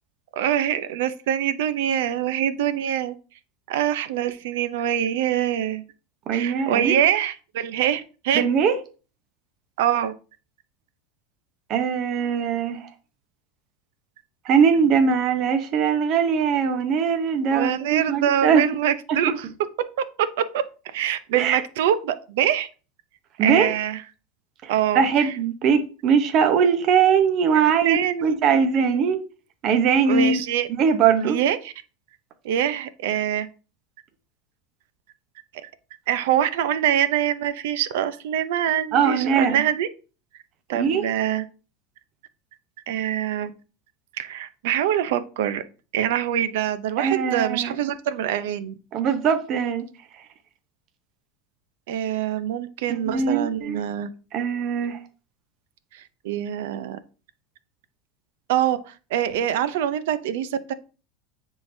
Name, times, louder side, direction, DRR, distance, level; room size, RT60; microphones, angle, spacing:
voice 1, 0.4-3.1 3.7-5.8 6.3-8.4 9.8-10.1 17.5-19.5 20.2-20.6 20.9-22.7 23.4-24.0 24.7-25.3 27.5-28.5 30.1-30.7 31.2-31.7 32.4-33.5 35.6-35.7 36.1-39.9 40.7-41.4 42.9-43.5 44.2-45.6 45.9-48.7 51.9-54.1 55.9-57.0 58.5-60.7, right 10 dB, 80° right, 0.6 m, -24 dB
voice 2, 6.3-7.0 8.3-8.8 11.7-12.9 14.4-18.7 19.1-19.2 21.3-21.6 23.4-23.7 24.6-29.2 29.6-30.4 30.8-31.4 38.9-39.6 40.7-41.1 47.0-47.7 48.9-49.8 53.1-53.8 54.3-55.0, right 6 dB, 45° right, 0.9 m, -21 dB
9.7 x 3.8 x 2.7 m
supercardioid pair, 120°, 0 cm